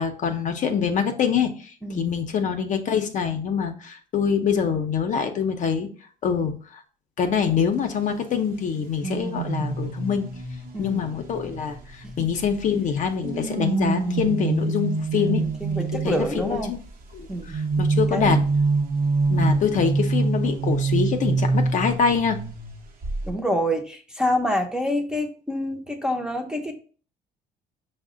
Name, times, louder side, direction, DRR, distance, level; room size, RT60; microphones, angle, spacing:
voice 1, 0.0-5.9 6.2-6.8 7.2-10.3 10.8-15.5 16.0-16.8 17.1-18.4 19.3-22.4, left 6 dB, 50° left, 6 dB, 0.6 m, -25 dB
voice 2, 1.8-2.2 10.7-11.0 12.2-12.3 15.2-16.7 17.3-17.7 18.1-18.4 19.4-19.8 23.3-26.7, equal, 5° right, 3 dB, 0.6 m, -27 dB
sound 1, 9.0-12.6 13.2-16.5 17.5-22.7 23.0-23.3, right 3 dB, 55° right, 0.8 m, -25 dB
5.2 x 2.1 x 3.7 m, 0.41 s
cardioid pair, 110°, 17 cm